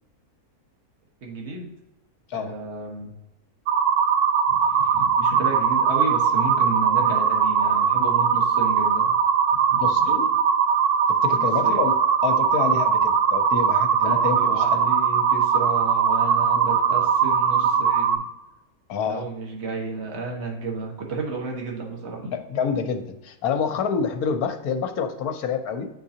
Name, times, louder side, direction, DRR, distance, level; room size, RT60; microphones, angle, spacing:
voice 1, 1.2-1.7 2.3-3.1 4.5-9.1 9.5-10.2 11.3-11.8 14.0-18.2 19.0-22.3, right 3 dB, 45° right, 0 dB, 1.5 m, -32 dB
sound 1, 3.7-18.2, right 7 dB, 80° right, 1.2 m, -20 dB
voice 2, 9.8-10.3 11.1-14.8 18.9-19.2 22.3-25.9, left 6 dB, 75° left, 7 dB, 1.2 m, -27 dB
9.7 x 3.9 x 2.8 m, 0.93 s
omnidirectional pair, 1.6 m